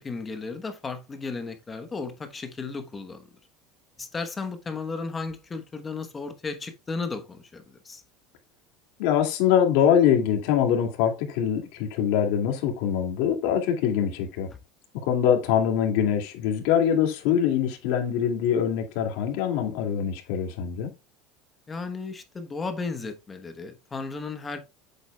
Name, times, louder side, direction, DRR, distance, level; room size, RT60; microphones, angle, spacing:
voice 1, 0.0-3.3 4.0-8.0 21.7-24.6, left 4 dB, 20° left, 1.1 m, -34 dB
voice 2, 9.0-14.5 15.1-20.9, left 9 dB, 75° left, 2.2 m, -23 dB
8.0 x 7.3 x 2.3 m
supercardioid pair, 130°, 0 cm